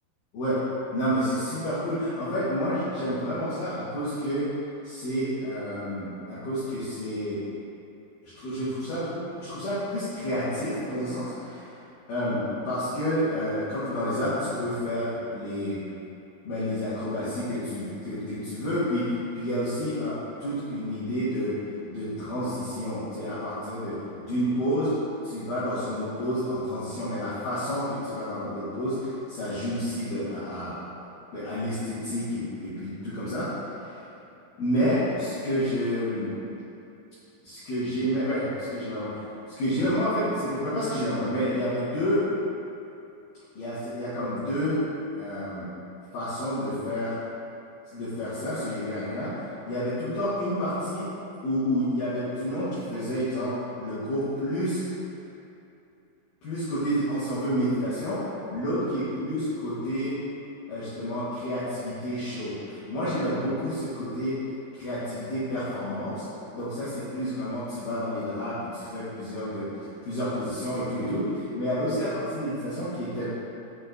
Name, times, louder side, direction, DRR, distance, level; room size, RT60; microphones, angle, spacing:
voice 1, 0.3-0.6 0.9-4.5 4.8-7.4 8.4-11.7 12.1-15.8 16.4-21.6 21.9-24.9 25.2-30.8 31.3-33.5 33.8-34.0 34.6-36.4 37.4-39.1 39.6-42.2 43.6-44.8 45.2-45.7 46.1-47.2 47.9-51.1 51.4-54.8 56.4-60.2 60.7-64.4 64.7-66.3 66.5-69.7 70.0-73.3, equal, 60° left, -13 dB, 2.5 m, -29 dB
7.3 x 6.1 x 2.5 m, 2.8 s
omnidirectional pair, 5.3 m